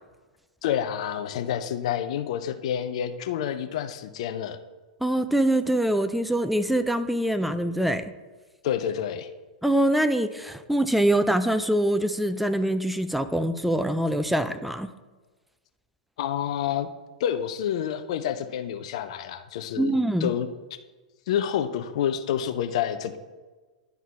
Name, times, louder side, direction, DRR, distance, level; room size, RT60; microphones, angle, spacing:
voice 1, 0.6-4.6 8.6-9.3 16.2-16.9 17.2-20.5 21.3-23.2, left 9 dB, 50° left, 9 dB, 0.6 m, -28 dB
voice 2, 5.0-8.1 9.6-14.9 19.8-20.3, right 1 dB, ahead, 10 dB, 0.4 m, -24 dB
11.0 x 4.0 x 4.1 m, 1.3 s
figure-of-eight pair, 95°, 4 cm